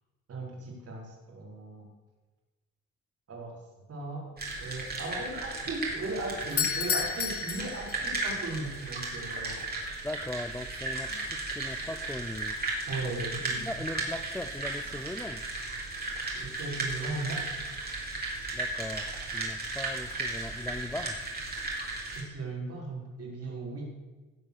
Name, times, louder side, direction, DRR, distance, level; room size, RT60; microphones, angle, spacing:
voice 1, 0.3-1.9 3.3-3.6 3.9-4.3 4.6-9.7 12.9-13.7 16.3-17.4 22.1-23.9, right 2 dB, 50° right, -1 dB, 4.7 m, -37 dB
sound 1, 4.4-22.2, right 2 dB, 30° right, 3.8 m, -35 dB
Doorbell, 6.4-8.4, left 9 dB, 50° left, 0.9 m, -31 dB
voice 2, 10.0-12.6 13.0-13.1 13.6-15.5 18.5-19.1 19.3-21.2, left 1 dB, 5° left, 9 dB, 0.5 m, -39 dB
17.0 x 5.8 x 6.5 m, 1.3 s
cardioid pair, 90°, 30 cm